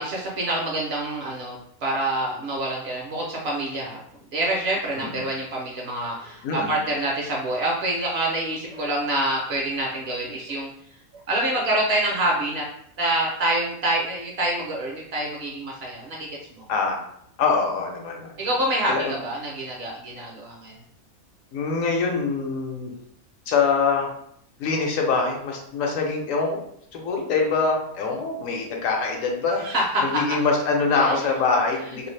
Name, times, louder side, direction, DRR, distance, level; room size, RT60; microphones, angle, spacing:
voice 1, 0.0-4.0 4.3-10.7 11.3-12.6 13.0-16.6 18.4-20.8 29.6-30.2 30.9-31.2, right 1 dB, 60° right, -2 dB, 0.7 m, -26 dB
voice 2, 16.7-17.0 17.4-18.3 18.9-19.2 21.5-22.9 23.5-24.1 24.6-26.6 26.9-29.6 30.0-32.1, left 4 dB, 75° left, 1 dB, 1.0 m, -24 dB
2.6 x 2.4 x 3.1 m, 0.70 s
omnidirectional pair, 1.5 m